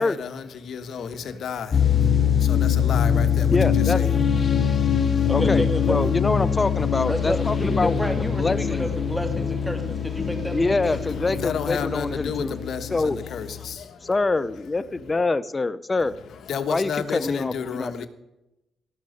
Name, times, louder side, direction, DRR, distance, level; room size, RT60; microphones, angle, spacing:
voice 1, 0.0-4.2 4.5-5.3 10.9-14.1 15.0-15.2 16.0-18.1, left 7 dB, 60° left, 1.3 m, -33 dB
sound 1, 1.7-13.7, left 7 dB, 40° left, 1.2 m, -23 dB
voice 2, 3.5-4.0 5.3-7.9 8.4-8.9 10.5-12.5 12.9-13.2 14.0-16.1 16.7-18.1, left 3 dB, 25° left, 0.7 m, -25 dB
voice 3, 5.3-6.0 7.1-11.0, equal, ahead, 3.0 m, -30 dB
sound 2, 6.8-12.4, left 1 dB, 20° right, 5.1 m, -42 dB
17.5 x 6.2 x 7.9 m
cardioid pair, 90°, 0 cm